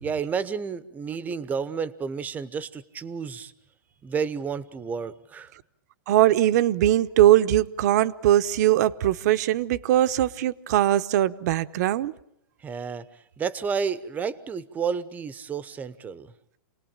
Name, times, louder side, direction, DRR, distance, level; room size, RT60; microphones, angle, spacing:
voice 1, 0.0-3.5 4.0-5.5 12.6-13.0 13.4-16.3, right 6 dB, 15° right, 0.9 m, -31 dB
voice 2, 6.1-12.1, right 13 dB, 50° right, 0.9 m, -21 dB
28.5 x 19.5 x 8.9 m
hypercardioid pair, 150°, 12 cm